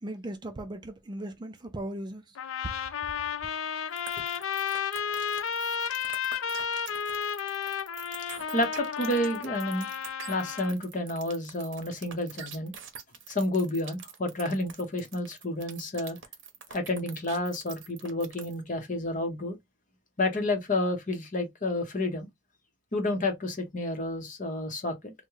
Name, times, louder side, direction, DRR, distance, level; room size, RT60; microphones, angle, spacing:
voice 1, 0.0-2.4, right 1 dB, 20° right, 0.4 m, -38 dB
sound 1, 2.4-10.7, left 7 dB, 90° left, 0.4 m, -32 dB
sound 2, 4.0-18.6, right 8 dB, 70° right, 0.7 m, -44 dB
voice 2, 8.5-9.9 10.3-12.7 13.3-16.2 16.7-19.6 20.2-22.3 22.9-25.1, left 1 dB, 40° left, 0.8 m, -30 dB
3.5 x 2.1 x 3.0 m
head